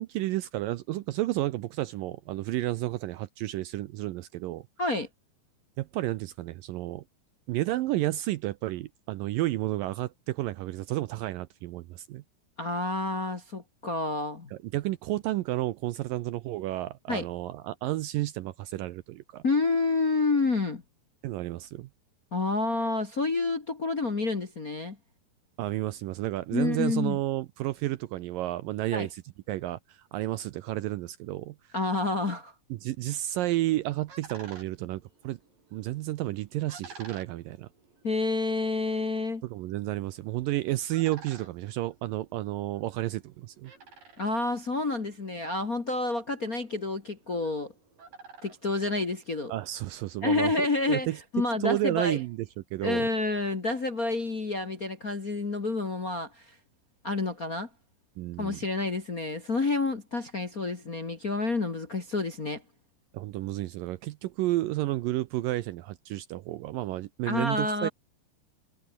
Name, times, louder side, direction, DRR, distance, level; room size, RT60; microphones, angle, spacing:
voice 1, 0.0-4.7 5.8-7.0 7.5-12.2 14.5-19.4 21.2-21.9 25.6-29.2 29.5-31.6 32.7-35.4 35.7-37.7 39.4-43.7 49.5-51.2 51.6-53.1 58.2-58.6 63.1-67.9, right 16 dB, 75° right, 2.2 m, -31 dB
voice 2, 12.6-14.5 17.1-17.3 19.4-20.8 22.3-25.0 26.5-27.2 28.9-29.1 31.7-32.5 38.0-39.4 44.2-47.7 48.4-49.5 50.2-51.1 51.3-52.2 52.8-56.5 57.0-57.7 58.4-62.6 67.2-67.9, left 3 dB, 35° left, 1.5 m, -29 dB
sound 1, 33.7-49.7, right 4 dB, 60° right, 8.3 m, -54 dB
omnidirectional pair, 4.5 m